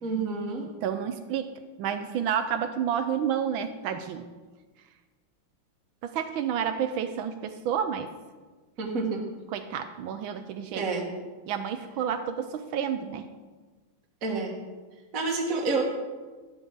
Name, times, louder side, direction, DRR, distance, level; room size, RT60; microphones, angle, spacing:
voice 1, 0.0-0.6 8.8-9.2 10.7-11.0 14.2-14.5 15.1-15.8, right 4 dB, 45° right, -1 dB, 1.7 m, -28 dB
voice 2, 0.8-1.5 1.8-4.3 6.0-8.1 9.5-10.8 11.5-13.3, right 8 dB, 80° right, 9 dB, 1.4 m, -30 dB
12.5 x 10.0 x 3.8 m, 1.3 s
omnidirectional pair, 2.3 m